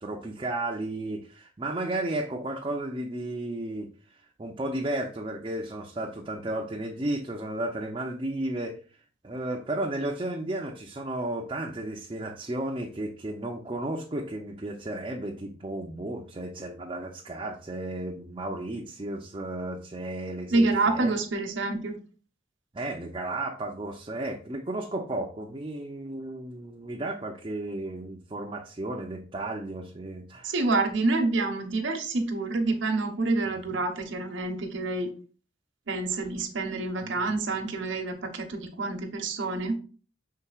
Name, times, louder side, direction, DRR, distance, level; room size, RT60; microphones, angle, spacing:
voice 1, 0.0-3.9 4.4-8.8 9.2-21.1 22.7-30.6 33.5-33.6 37.0-37.4, right 1 dB, 25° right, 0 dB, 0.4 m, -33 dB
voice 2, 20.5-21.9 30.4-35.1 35.9-39.8, right 3 dB, 70° right, 4 dB, 0.8 m, -27 dB
5.5 x 3.7 x 2.3 m, 0.40 s
head